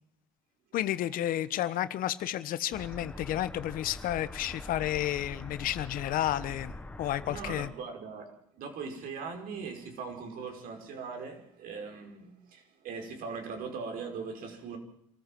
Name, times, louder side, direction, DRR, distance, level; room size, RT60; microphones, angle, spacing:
voice 1, 0.7-7.7, left 13 dB, 55° left, 1.2 m, -31 dB
sound 1, 2.7-7.7, left 1 dB, 10° left, 1.5 m, -44 dB
voice 2, 7.2-14.8, right 5 dB, 60° right, 5.6 m, -40 dB
26.5 x 14.0 x 7.7 m
supercardioid pair, 85°, 17 cm